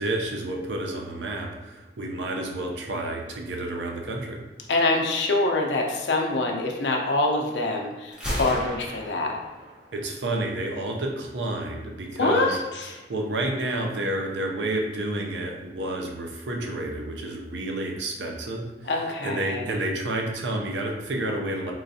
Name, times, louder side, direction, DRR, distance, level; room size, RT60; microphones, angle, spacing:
voice 1, 0.0-4.4 9.9-12.6 13.1-18.9 19.2-21.7, right 1 dB, 85° right, 1 dB, 0.6 m, -30 dB
voice 2, 4.7-9.4 12.2-13.0 18.8-19.7, left 2 dB, 80° left, 1 dB, 0.6 m, -25 dB
Gunshot gunfire, 8.1-10.1, equal, 5° right, 0.8 m, -34 dB
3.8 x 3.1 x 2.7 m, 1.1 s
head